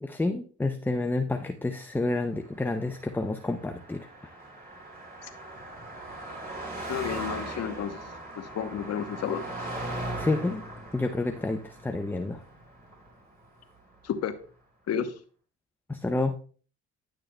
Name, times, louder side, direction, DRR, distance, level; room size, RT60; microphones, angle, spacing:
voice 1, 0.0-4.1 10.2-10.6 10.9-12.4 15.9-16.4, left 2 dB, 5° left, 0.5 m, -29 dB
Car passing by, 2.2-13.8, right 1 dB, 30° right, 3.6 m, -39 dB
voice 2, 6.9-8.0 8.4-9.4 14.0-14.3 14.9-15.1, left 8 dB, 60° left, 1.0 m, -31 dB
10.5 x 6.6 x 2.2 m
supercardioid pair, 80°, 30 cm